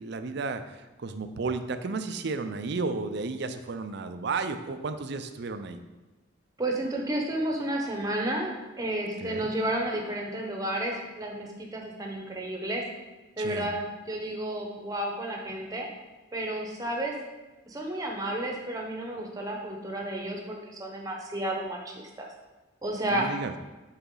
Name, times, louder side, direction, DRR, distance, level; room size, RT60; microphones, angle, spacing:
voice 1, 0.0-5.8 9.2-9.5 13.4-13.7 23.1-23.5, right 4 dB, 60° right, 9 dB, 0.5 m, -33 dB
voice 2, 6.6-8.5 8.8-12.8 13.4-13.8 14.1-15.9 16.3-17.1 17.7-22.3 22.8-23.3, right 1 dB, 20° right, 1 dB, 0.9 m, -31 dB
7.0 x 4.9 x 3.8 m, 1.2 s
head